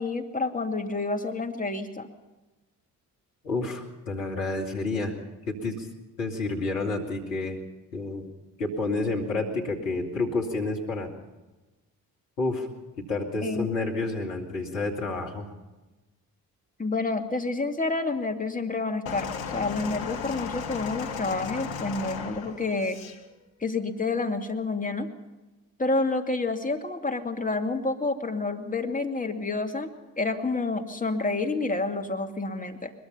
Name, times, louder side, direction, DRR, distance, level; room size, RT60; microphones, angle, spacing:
voice 1, 0.0-2.1 13.4-13.7 16.8-23.0 23.6-25.1 25.8-29.9 30.2-32.9, left 3 dB, 15° left, 4 dB, 2.4 m, -29 dB
voice 2, 3.4-5.1 5.5-5.9 6.2-7.6 7.9-8.3 8.6-11.1 12.4-12.7 13.0-15.5, left 3 dB, 80° left, 0 dB, 2.6 m, -29 dB
sound 1, 19.1-23.2 24.1-24.2, left 6 dB, 65° left, 2.0 m, -35 dB
21.5 x 21.5 x 5.7 m, 1.1 s
figure-of-eight pair, 45°, 48 cm